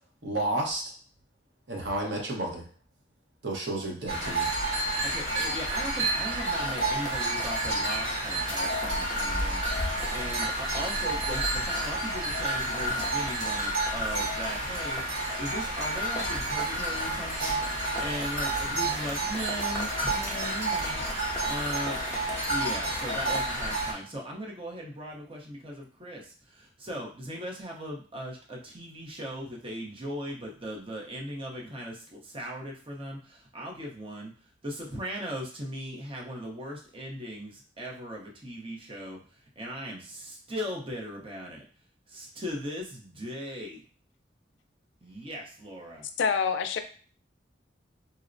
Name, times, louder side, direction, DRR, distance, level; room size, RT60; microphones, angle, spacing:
voice 1, 0.2-0.8 1.7-2.6 3.4-4.4, right 1 dB, 60° right, -1 dB, 0.9 m, -31 dB
sound 1, 4.1-23.9, right 1 dB, 80° right, 1.5 m, -30 dB
voice 2, 5.0-22.0 22.4-41.6 42.1-43.8 45.0-46.1, equal, 30° right, -2 dB, 0.7 m, -38 dB
sound 2, 6.7-23.4, left 1 dB, 15° left, 0.5 m, -44 dB
voice 3, 46.2-46.8, left 6 dB, 75° left, 9 dB, 0.4 m, -26 dB
4.1 x 2.1 x 2.5 m, 0.41 s
head